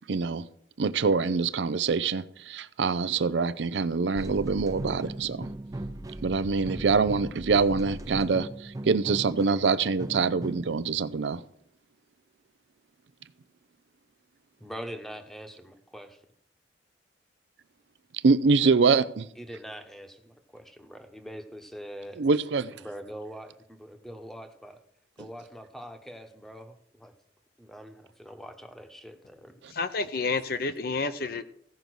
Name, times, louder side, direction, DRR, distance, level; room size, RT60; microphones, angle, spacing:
voice 1, 0.1-0.5 0.8-5.5 6.2-11.4 18.2-19.3 22.2-22.8, right 4 dB, 80° right, 0.5 m, -25 dB
sound 1, 4.2-10.8, right 1 dB, 20° right, 0.5 m, -38 dB
voice 2, 14.6-16.2 19.4-22.2 22.7-24.8 25.2-27.1 27.6-29.6, equal, ahead, 1.0 m, -43 dB
voice 3, 29.7-31.4, left 4 dB, 55° left, 0.7 m, -29 dB
15.5 x 5.3 x 6.2 m
head